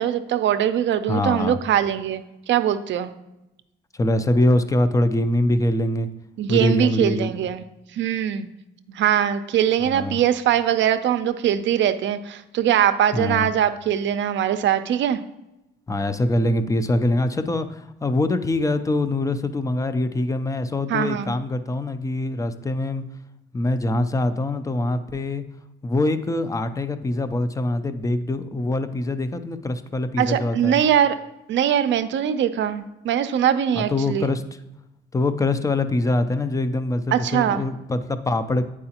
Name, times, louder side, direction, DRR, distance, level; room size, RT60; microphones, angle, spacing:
voice 1, 0.0-3.1 6.4-7.6 7.9-8.5 8.9-15.2 20.9-21.3 30.2-31.1 31.5-34.3 37.1-37.6, right 10 dB, 70° right, 11 dB, 0.5 m, -22 dB
voice 2, 1.1-1.6 4.0-6.1 6.5-7.3 9.8-10.2 13.1-13.5 15.9-23.0 23.5-25.4 25.8-30.8 33.8-34.4 35.1-38.7, left 2 dB, 15° left, 11 dB, 0.5 m, -23 dB
8.6 x 4.8 x 2.9 m, 0.92 s
cardioid pair, 90°, 20 cm